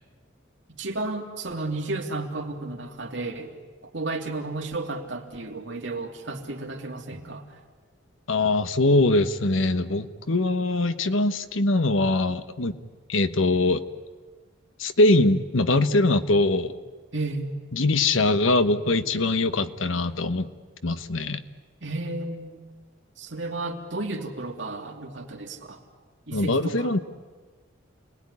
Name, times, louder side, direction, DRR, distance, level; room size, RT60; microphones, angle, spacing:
voice 1, 0.8-3.5 3.8-7.5 17.1-17.5 21.8-22.6 23.2-25.8 26.3-26.9, right 2 dB, 65° right, 2 dB, 3.0 m, -33 dB
voice 2, 8.3-12.7 13.1-13.8 14.8-16.7 17.7-20.5 20.8-21.4 26.3-27.0, left 2 dB, 80° left, 11 dB, 1.2 m, -22 dB
29.0 x 20.0 x 9.9 m, 1.4 s
head